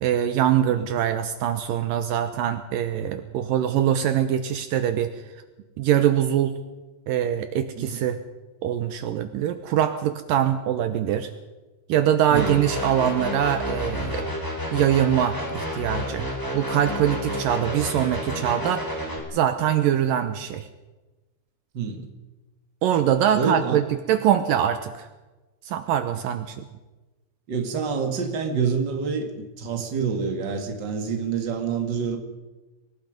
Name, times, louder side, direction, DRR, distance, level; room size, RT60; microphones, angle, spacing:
voice 1, 0.0-5.1 5.8-6.6 7.1-8.2 8.6-11.3 11.9-14.3 14.7-16.2 16.5-18.8 19.3-20.7 22.8-23.8 24.1-25.1 25.7-26.7, right 10 dB, 90° right, 9 dB, 1.9 m, -23 dB
sound 1, 12.3-19.2, left 1 dB, 5° left, 3.6 m, -30 dB
voice 2, 12.3-12.7 21.7-22.0 23.3-23.8 27.5-32.2, right 5 dB, 35° right, 4 dB, 1.8 m, -27 dB
24.0 x 21.0 x 5.2 m, 1.1 s
omnidirectional pair, 5.2 m